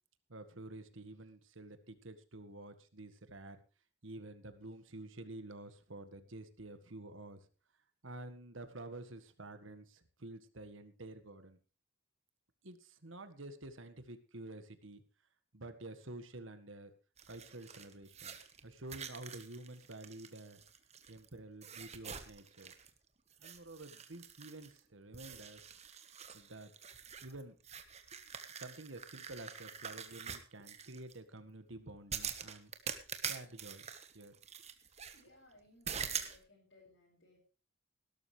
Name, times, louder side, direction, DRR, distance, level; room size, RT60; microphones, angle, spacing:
voice 1, 0.3-3.6 4.0-7.5 8.0-11.6 12.6-15.0 15.5-16.9 17.3-18.4 18.6-20.6 21.1-22.7 23.4-25.7 26.3-26.7 27.2-27.6 28.6-32.7 33.2-33.9 34.1-34.3, right 2 dB, 75° right, 10 dB, 1.7 m, -50 dB
sound 1, 17.2-21.3 21.6-23.0 23.3-24.8 25.1-31.1 32.1-35.2 35.9-36.4, right 7 dB, 35° right, 1.4 m, -45 dB
voice 2, 35.1-37.4, left 1 dB, 60° left, -5 dB, 6.0 m, -63 dB
19.0 x 12.0 x 3.4 m, 0.34 s
head